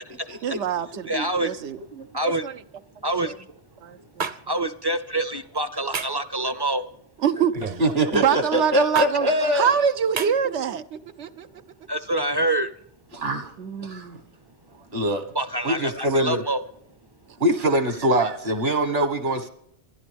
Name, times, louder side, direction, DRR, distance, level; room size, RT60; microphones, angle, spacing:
voice 1, 0.4-1.8 2.2-2.6 3.8-4.3 7.2-7.7 8.1-11.5 13.6-14.2, right 7 dB, 85° right, 1.1 m, -25 dB
voice 2, 1.1-1.5 2.1-2.4 3.0-3.3 4.5-6.8 11.9-12.7 15.3-16.6, right 1 dB, 30° right, 0.5 m, -26 dB
sound 1, 4.2-4.4 5.9-6.2 7.5-7.8 9.0-9.1 10.2-10.3, right 5 dB, 50° right, 0.9 m, -28 dB
voice 3, 7.6-9.8 13.1-13.5 13.8-14.1 14.9-15.2 15.6-16.4 17.4-19.5, right 1 dB, 65° right, 1.8 m, -23 dB
28.5 x 11.0 x 3.4 m
omnidirectional pair, 1.1 m